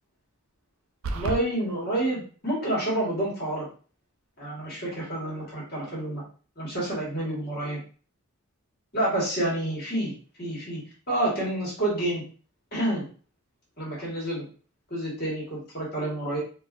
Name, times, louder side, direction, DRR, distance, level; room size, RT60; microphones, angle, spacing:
sound 1, 1.0-1.4, right 3 dB, 65° right, 0.4 m, -29 dB
voice 1, 1.1-3.7 4.4-6.2 6.6-7.8 8.9-10.1 10.4-10.8 11.1-12.2 12.7-13.1 13.8-14.5 14.9-16.4, right 1 dB, 45° left, -5 dB, 1.5 m, -28 dB
4.0 x 2.5 x 2.5 m, 0.40 s
head